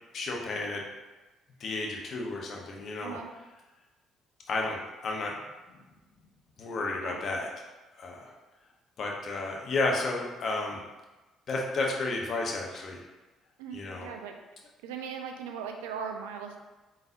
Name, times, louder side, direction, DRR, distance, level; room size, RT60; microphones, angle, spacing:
voice 1, 0.1-0.8 1.6-3.2 4.5-5.3 5.7-5.8 6.6-7.5 8.0-8.3 9.0-10.8 11.5-13.0 13.7-14.1, left 2 dB, 55° left, -1 dB, 0.8 m, -32 dB
voice 2, 3.0-3.3 7.0-7.2 13.6-14.3 14.8-16.6, right 7 dB, 80° right, 4 dB, 0.4 m, -39 dB
4.0 x 3.9 x 2.6 m, 1.2 s
hypercardioid pair, 50°, 0 cm